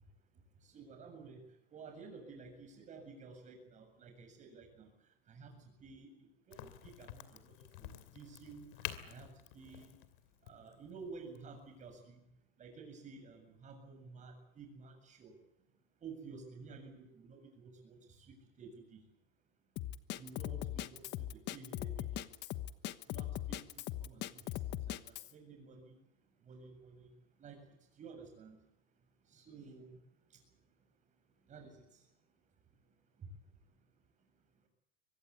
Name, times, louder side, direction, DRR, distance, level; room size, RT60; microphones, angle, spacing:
voice 1, 0.6-1.4 1.7-4.9 5.3-5.5 5.8-6.1 6.5-8.7 9.0-10.0 10.5-12.2 12.6-15.3 16.0-19.0 20.2-22.2 23.1-23.6 24.0-24.4 24.7-26.0 26.5-27.1 27.4-27.6 28.0-28.6 29.3-30.0 31.5-31.8 33.2-33.3, right 4 dB, 25° right, 6 dB, 7.5 m, -52 dB
Crack, 6.5-12.0, left 14 dB, 60° left, 2.7 m, -49 dB
Drum kit, 19.8-25.3, left 13 dB, 35° left, 1.2 m, -40 dB
24.5 x 20.5 x 8.5 m, 0.84 s
supercardioid pair, 150°, 29 cm